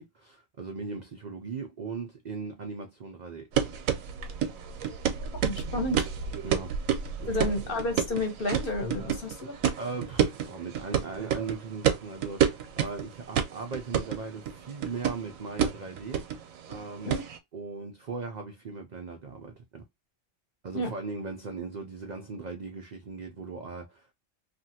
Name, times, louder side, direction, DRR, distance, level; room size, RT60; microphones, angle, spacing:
voice 1, 0.0-3.5 6.4-7.5 9.8-16.3 16.7-17.2 17.5-19.8 20.6-24.1, right 4 dB, 65° right, 0.4 m, -38 dB
sound 1, 3.5-17.4, right 8 dB, 90° right, 1.1 m, -30 dB
voice 2, 5.4-6.1 7.3-9.6 17.0-17.2 20.7-20.9, left 2 dB, 45° left, 1.0 m, -31 dB
2.8 x 2.5 x 2.7 m
omnidirectional pair, 1.4 m